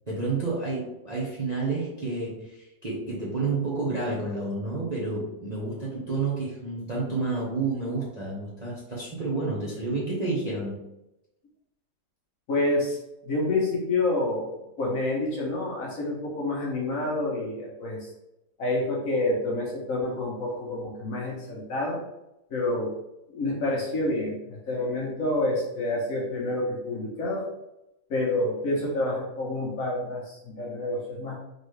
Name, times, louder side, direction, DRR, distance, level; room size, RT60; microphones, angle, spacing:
voice 1, 0.1-10.8, right 3 dB, 35° right, -6 dB, 0.7 m, -30 dB
voice 2, 12.5-13.0 13.2-14.5 14.8-18.1 18.6-22.0 22.5-22.9 23.3-27.5 28.1-31.4, left 2 dB, 55° left, -3 dB, 1.2 m, -28 dB
3.9 x 3.6 x 3.2 m, 0.90 s
omnidirectional pair, 2.0 m